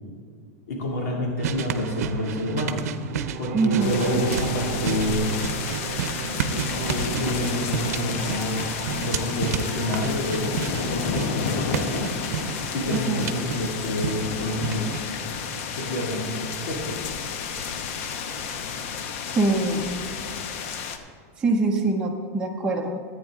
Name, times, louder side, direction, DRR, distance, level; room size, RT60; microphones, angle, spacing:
voice 1, 0.7-2.8 3.4-5.4 6.9-12.1 12.7-14.9 15.7-17.0, left 1 dB, 80° left, -1 dB, 2.4 m, -28 dB
CW Battle Nearby, 1.4-15.0, right 8 dB, 80° right, 0.7 m, -32 dB
sound 1, 3.0-13.1, right 10 dB, 55° right, 0.4 m, -36 dB
voice 2, 3.5-4.2 12.9-13.5 19.4-20.0 21.4-23.0, right 3 dB, 10° right, -2 dB, 0.7 m, -24 dB
sound 2, 3.8-21.0, left 6 dB, 60° left, 0.9 m, -31 dB
14.5 x 9.0 x 3.7 m, 2.1 s
supercardioid pair, 150°, 8 cm